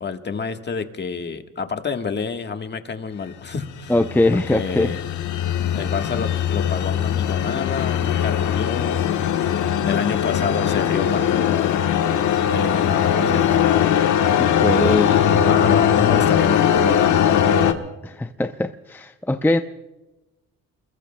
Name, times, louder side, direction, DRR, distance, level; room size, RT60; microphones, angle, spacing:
voice 1, 0.0-3.9 4.3-5.0 5.7-9.1 9.5-11.8 12.5-13.9 14.7-17.8, left 5 dB, 35° left, 1.4 m, -28 dB
sound 1, 3.6-17.7, left 9 dB, 75° left, 1.2 m, -20 dB
voice 2, 3.9-4.9 14.4-15.5 18.2-19.6, left 2 dB, 5° left, 0.6 m, -21 dB
30.0 x 21.5 x 2.2 m
cardioid pair, 90°, 30 cm